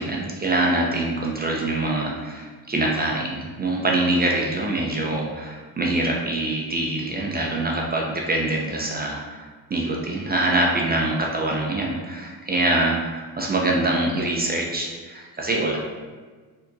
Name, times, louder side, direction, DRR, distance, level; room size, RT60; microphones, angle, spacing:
voice 1, 0.0-15.8, right 2 dB, 20° right, -2 dB, 0.5 m, -24 dB
4.1 x 2.9 x 2.6 m, 1.4 s
supercardioid pair, 75°, 45 cm